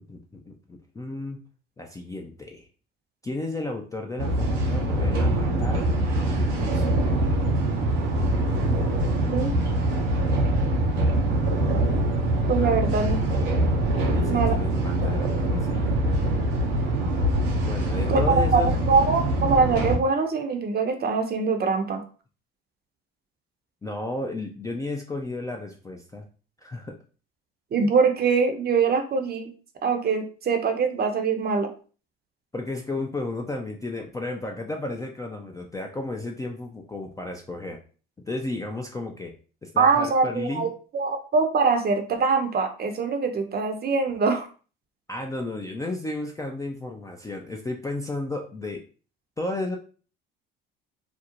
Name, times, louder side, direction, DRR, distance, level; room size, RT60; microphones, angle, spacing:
voice 1, 0.1-1.4 1.8-2.7 3.2-5.9 6.2-7.4 12.6-12.7 14.0-16.0 17.6-18.7 23.8-26.3 26.6-27.0 32.5-37.8 38.3-39.3 39.6-40.7 45.1-48.8 49.4-49.8, left 2 dB, 10° left, 1 dB, 0.3 m, -33 dB
sound 1, 4.2-20.0, right 1 dB, 85° right, 0.7 m, -24 dB
voice 2, 12.5-13.2 14.3-14.6 18.1-22.0 27.7-29.5 29.8-31.7 39.8-40.7 40.9-44.5, right 4 dB, 35° right, 6 dB, 0.6 m, -23 dB
2.5 x 2.0 x 2.8 m, 0.38 s
hypercardioid pair, 65°, 29 cm